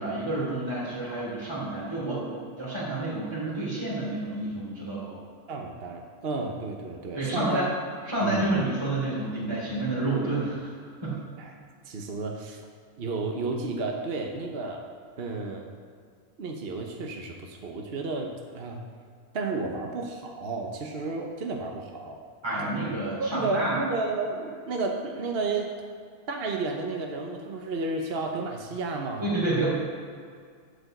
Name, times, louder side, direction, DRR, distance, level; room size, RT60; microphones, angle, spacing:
voice 1, 0.0-5.2 7.1-7.7 8.1-10.7 11.0-11.2 22.4-23.8 29.2-29.7, right 2 dB, 20° right, -8 dB, 3.4 m, -29 dB
voice 2, 5.5-7.7 8.2-8.5 11.4-11.5 11.8-12.6 13.0-14.8 15.2-15.7 16.4-18.8 19.3-22.2 23.2-25.7 26.3-29.4, right 3 dB, 50° right, 1 dB, 1.1 m, -32 dB
12.0 x 5.2 x 7.8 m, 2.1 s
omnidirectional pair, 1.4 m